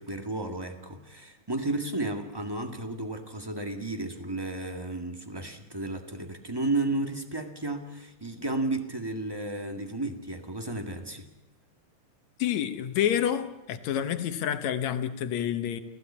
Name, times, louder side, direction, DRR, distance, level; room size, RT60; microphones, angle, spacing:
voice 1, 0.0-11.3, right 2 dB, 10° right, 5 dB, 1.1 m, -33 dB
voice 2, 12.4-15.8, left 10 dB, 70° left, 10 dB, 2.3 m, -28 dB
29.0 x 15.5 x 8.6 m, 0.92 s
omnidirectional pair, 3.5 m